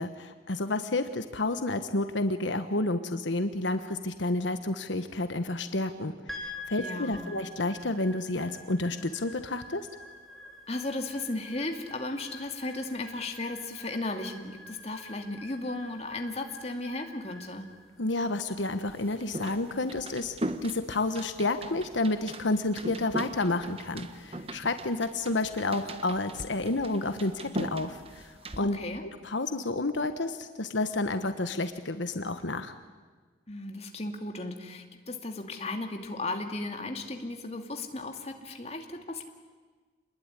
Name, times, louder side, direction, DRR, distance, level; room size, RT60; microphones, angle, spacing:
voice 1, 0.0-9.9 18.0-20.3 20.6-32.7, left 2 dB, 75° left, 9 dB, 1.3 m, -30 dB
sound 1, 6.3-20.7, left 1 dB, ahead, 3.6 m, -47 dB
voice 2, 6.8-7.3 10.7-17.7 28.7-29.0 33.5-39.2, left 2 dB, 35° left, 4 dB, 2.4 m, -35 dB
sound 2, 18.9-28.6, right 1 dB, 30° right, 1.3 m, -39 dB
27.5 x 21.0 x 9.9 m, 1.4 s
head